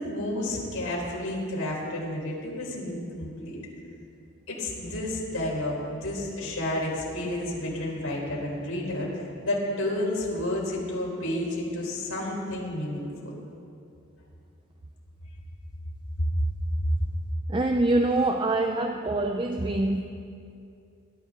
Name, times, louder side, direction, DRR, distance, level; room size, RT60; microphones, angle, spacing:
voice 1, 0.0-3.6 4.5-13.3 16.2-16.3, left 1 dB, 85° left, -4 dB, 4.3 m, -31 dB
voice 2, 17.5-20.0, right 2 dB, 20° right, 5 dB, 0.5 m, -25 dB
20.0 x 12.5 x 3.8 m, 2.5 s
head